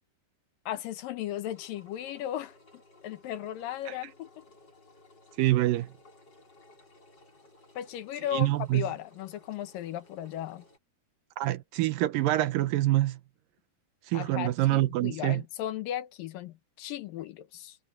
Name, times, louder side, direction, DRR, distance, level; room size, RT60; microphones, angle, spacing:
voice 1, 0.7-2.6 3.0-4.3 7.8-10.6 14.1-17.8, left 12 dB, 80° left, 2.8 m, -36 dB
Engine, 1.4-10.8, left 2 dB, 30° left, 5.5 m, -58 dB
voice 2, 5.4-5.9 8.3-8.9 11.4-13.2 14.1-15.4, right 16 dB, 85° right, 2.5 m, -26 dB
omnidirectional pair, 3.9 m